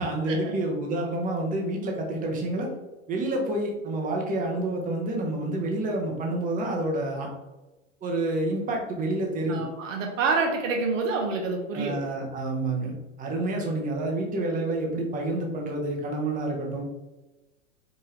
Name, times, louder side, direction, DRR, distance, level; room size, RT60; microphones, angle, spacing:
voice 1, 0.0-2.7 3.1-7.3 8.0-9.6 11.7-16.8, right 2 dB, 20° right, 0 dB, 1.0 m, -28 dB
voice 2, 9.5-12.0, right 4 dB, 70° right, 2 dB, 1.0 m, -27 dB
4.9 x 2.7 x 3.3 m, 1.1 s
hypercardioid pair, 120°, 40 cm